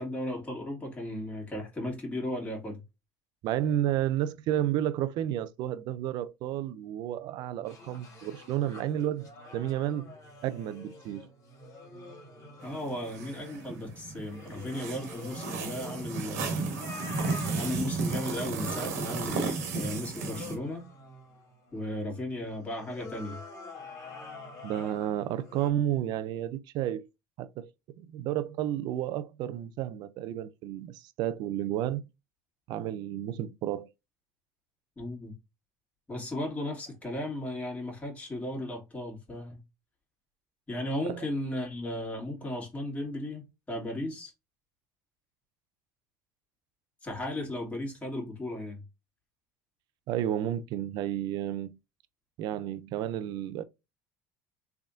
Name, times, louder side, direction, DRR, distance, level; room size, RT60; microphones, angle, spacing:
voice 1, 0.0-2.8 12.6-16.7 17.6-20.9 21.7-23.4 35.0-35.3 36.1-39.6 40.7-44.3 47.0-48.8, left 1 dB, 15° left, 2.2 m, -35 dB
voice 2, 3.4-10.1 10.4-11.3 24.6-27.1 27.4-27.7 28.0-32.1 32.7-33.9 41.1-41.2 50.1-51.8 52.4-53.6, right 11 dB, 60° right, 0.5 m, -31 dB
sound 1, 7.6-25.7, left 2 dB, 40° left, 1.9 m, -47 dB
sound 2, 12.6-20.6, right 4 dB, 85° right, 1.4 m, -34 dB
3.5 x 3.5 x 2.6 m
supercardioid pair, 95°, 8 cm